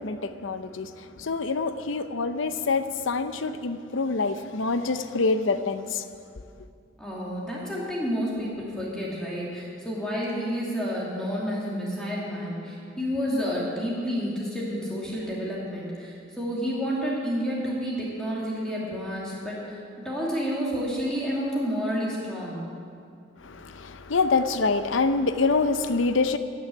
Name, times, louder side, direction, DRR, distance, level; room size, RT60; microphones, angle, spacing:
voice 1, 0.0-6.0 23.4-26.4, left 4 dB, 90° left, 10 dB, 0.7 m, -26 dB
voice 2, 7.0-19.8 20.0-22.6, equal, 5° left, -6 dB, 2.5 m, -30 dB
14.5 x 6.3 x 9.9 m, 2.4 s
head